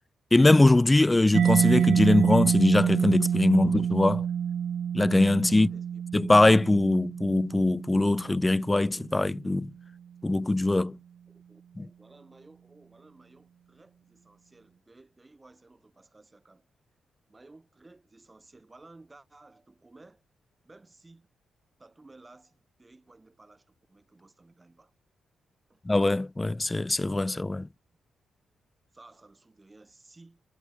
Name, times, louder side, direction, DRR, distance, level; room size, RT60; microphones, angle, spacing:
voice 1, 0.3-4.2 4.9-5.7 6.1-9.7 10.2-11.0 11.8-11.9 25.9-27.6, left 2 dB, 15° left, 0.4 m, -22 dB
Mallet percussion, 1.3-8.8, right 8 dB, 55° right, 0.6 m, -27 dB
voice 2, 5.5-6.0 11.3-16.7 17.3-20.2 20.6-21.3 21.8-24.9 25.7-25.8 27.5-27.8 28.9-30.4, right 2 dB, 15° right, 7.9 m, -56 dB
cardioid pair, 135°, 0 cm